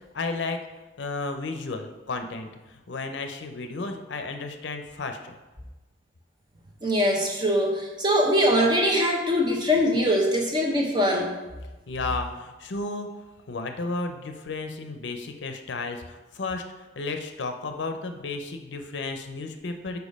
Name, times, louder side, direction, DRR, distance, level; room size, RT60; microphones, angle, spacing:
voice 1, 0.1-0.6 1.0-5.4 9.7-9.9 11.9-13.1 13.5-16.6 17.0-20.0, left 3 dB, 70° left, 6 dB, 0.6 m, -33 dB
voice 2, 6.8-11.3, equal, 25° right, 0 dB, 0.9 m, -22 dB
5.1 x 4.7 x 5.3 m, 1.1 s
head